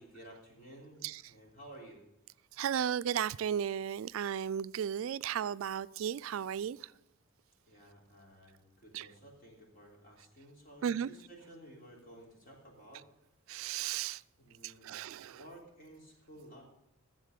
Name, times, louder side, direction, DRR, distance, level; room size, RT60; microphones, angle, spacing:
voice 1, 0.0-2.0 7.7-13.1 14.4-16.6, right 1 dB, 45° left, 3.5 m, -54 dB
voice 2, 2.6-6.9 8.9-9.1 10.8-11.1 13.5-14.2 14.6-15.4, right 9 dB, 75° right, 0.3 m, -35 dB
13.5 x 7.6 x 6.6 m
head